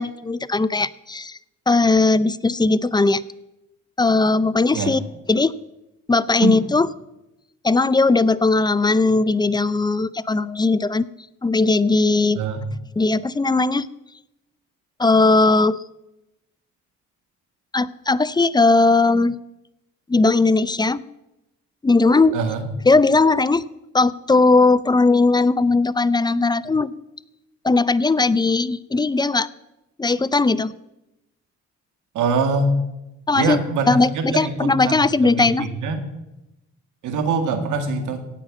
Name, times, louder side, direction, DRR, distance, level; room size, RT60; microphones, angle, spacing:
voice 1, 0.0-1.4 1.7-3.2 4.0-5.0 5.3-5.6 6.1-6.9 7.6-11.1 11.4-12.4 13.0-13.9 15.0-15.8 17.7-19.4 20.1-21.0 21.8-22.4 22.9-23.6 23.9-26.9 27.6-29.5 30.0-30.7 33.3-33.6 33.9-35.7, left 3 dB, 15° left, 18 dB, 0.4 m, -18 dB
voice 2, 22.3-22.7 32.1-32.8 33.3-36.0 37.0-38.2, right 4 dB, 80° right, 7 dB, 2.0 m, -23 dB
16.5 x 5.6 x 8.7 m, 0.94 s
cardioid pair, 90°, 30 cm